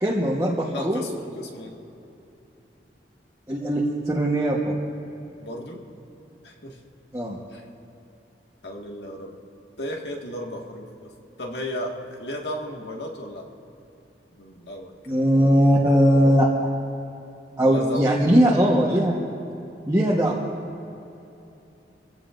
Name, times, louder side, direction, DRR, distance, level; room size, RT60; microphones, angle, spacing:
voice 1, 0.0-1.0 3.5-4.7 7.1-7.4 15.1-16.5 17.6-19.1 19.9-20.4, equal, 15° right, -5 dB, 1.1 m, -20 dB
voice 2, 0.7-1.8 5.4-5.8 6.4-6.8 7.5-7.6 8.6-9.4 9.8-11.1 11.4-13.5 14.4-15.2 17.6-18.1, left 1 dB, 70° left, 0 dB, 1.8 m, -34 dB
24.5 x 16.0 x 2.6 m, 2.9 s
head